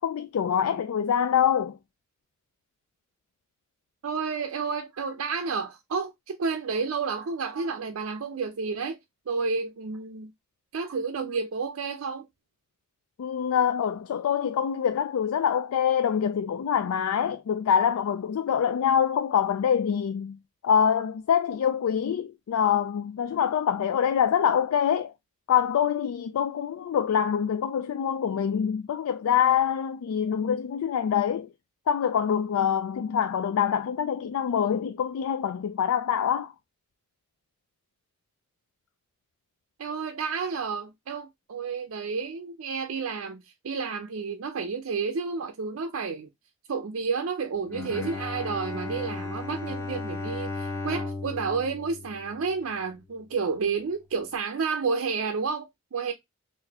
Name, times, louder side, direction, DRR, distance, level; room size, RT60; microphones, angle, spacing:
voice 1, 0.0-1.8 13.2-20.4 20.6-25.1 25.5-31.5 31.9-36.5, left 8 dB, 80° left, 0.3 m, -25 dB
voice 2, 4.0-9.0 9.3-10.3 10.7-12.3 39.8-46.3 46.7-56.1, right 5 dB, 75° right, 0.5 m, -31 dB
Bowed string instrument, 47.6-52.9, left 3 dB, 15° left, 0.6 m, -35 dB
3.9 x 2.6 x 2.7 m
head